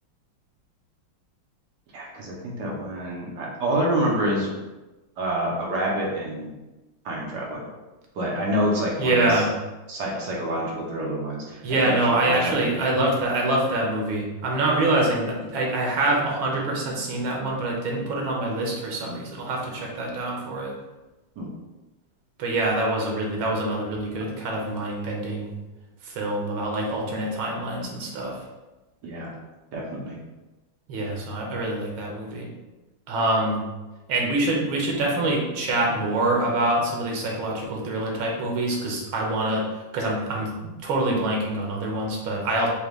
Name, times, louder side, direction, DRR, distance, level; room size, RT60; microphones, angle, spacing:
voice 1, 1.9-4.5 5.2-6.5 7.0-7.7 8.1-9.3 9.9-12.0 12.2-12.8 21.4-21.5 29.0-29.3 29.7-30.2, right 1 dB, 65° right, -3 dB, 1.3 m, -27 dB
voice 2, 9.0-9.5 11.6-20.7 22.4-25.5 26.0-28.4 30.9-32.5 33.1-33.6 34.1-42.7, right 2 dB, 85° right, -1 dB, 1.7 m, -25 dB
5.1 x 2.3 x 3.1 m, 1.1 s
omnidirectional pair, 2.2 m